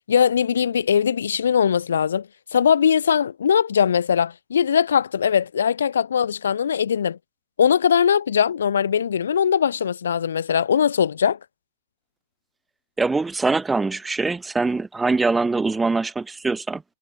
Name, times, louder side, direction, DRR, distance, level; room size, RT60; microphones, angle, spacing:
voice 1, 0.1-2.3 2.5-7.2 7.6-11.4, left 8 dB, 90° left, 1.0 m, -20 dB
voice 2, 13.0-16.8, right 3 dB, 10° right, 0.7 m, -23 dB
hypercardioid pair, 140°, 0 cm